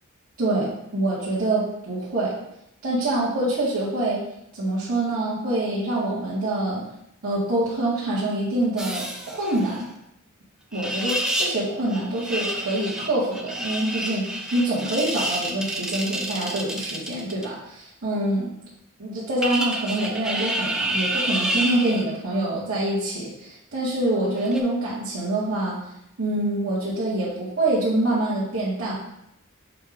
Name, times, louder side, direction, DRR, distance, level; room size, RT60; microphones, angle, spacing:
voice 1, 0.4-2.3 2.8-4.2 4.5-6.9 7.2-9.9 10.7-18.6 19.0-25.8 26.2-28.9, right 1 dB, 75° right, -9 dB, 1.9 m, -25 dB
sound 1, 8.8-9.8 10.7-11.6 11.9-17.5 19.4-22.1 24.4-24.6, right 1 dB, 5° right, 0.5 m, -29 dB
6.7 x 2.8 x 5.1 m, 0.81 s
head